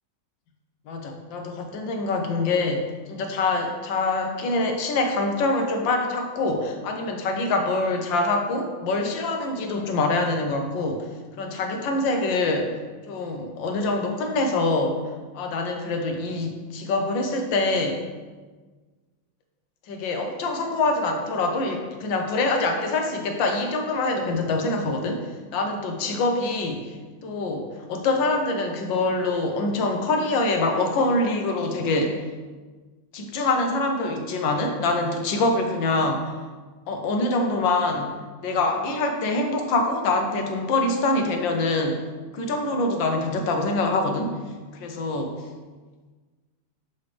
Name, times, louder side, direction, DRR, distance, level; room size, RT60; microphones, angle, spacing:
voice 1, 0.9-11.1 11.4-12.7 13.1-15.0 15.3-18.0 19.9-25.2 25.5-32.2 33.1-36.3 36.9-42.0 42.3-44.4 44.7-45.3, left 2 dB, 90° left, 3 dB, 1.6 m, -25 dB
7.0 x 5.5 x 3.3 m, 1.4 s
omnidirectional pair, 2.0 m